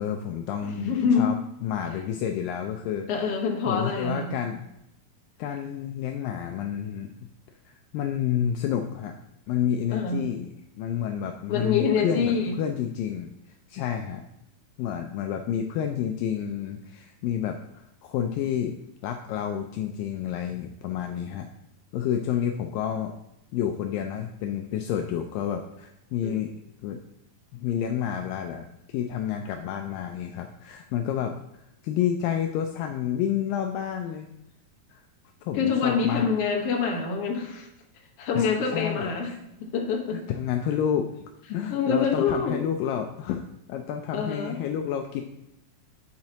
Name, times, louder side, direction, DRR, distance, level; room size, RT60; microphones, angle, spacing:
voice 1, 0.0-1.3 1.6-3.1 3.7-4.6 5.4-7.1 7.7-9.1 9.5-10.5 10.8-13.3 13.7-14.2 14.8-18.8 19.0-21.5 21.9-23.1 23.5-26.5 26.8-27.0 27.5-31.4 31.8-34.3 34.9-35.0 35.4-36.3 38.3-39.4 40.1-43.4 43.7-45.2, left 9 dB, 80° left, 4 dB, 2.1 m, -29 dB
voice 2, 0.6-1.3 3.1-4.4 9.9-10.3 11.5-12.6 26.2-26.3 35.5-37.7 38.2-39.3 39.6-40.2 41.7-42.6 44.1-44.6, left 5 dB, 55° left, 0 dB, 1.9 m, -25 dB
9.7 x 7.3 x 2.9 m, 0.84 s
omnidirectional pair, 4.2 m